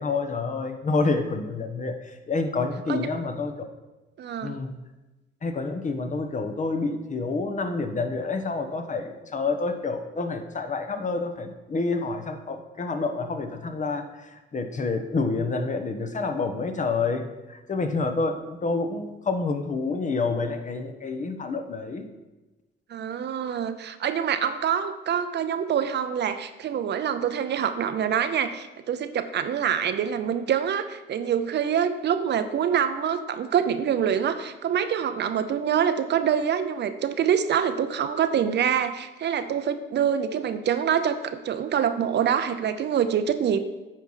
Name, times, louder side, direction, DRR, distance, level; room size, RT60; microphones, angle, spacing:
voice 1, 0.0-3.5 4.4-4.8 5.4-17.2 17.5-22.1, left 3 dB, 40° left, 7 dB, 1.0 m, -28 dB
voice 2, 4.2-4.6 22.9-43.6, right 8 dB, 60° right, 10 dB, 0.7 m, -25 dB
9.1 x 4.7 x 5.6 m, 1.1 s
cardioid pair, 90°, 20 cm